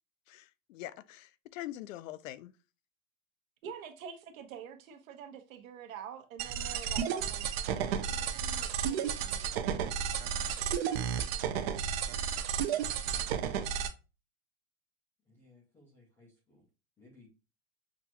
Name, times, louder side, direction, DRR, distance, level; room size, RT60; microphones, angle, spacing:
voice 1, 0.3-2.5, left 14 dB, 70° left, 0.5 m, -44 dB
voice 2, 3.6-9.5, right 8 dB, 75° right, 1.0 m, -47 dB
sound 1, 6.4-13.9, right 8 dB, 50° right, 0.5 m, -32 dB
voice 3, 15.3-16.6 17.0-17.3, left 2 dB, 5° left, 0.3 m, -60 dB
5.8 x 2.3 x 2.8 m
supercardioid pair, 155°, 41 cm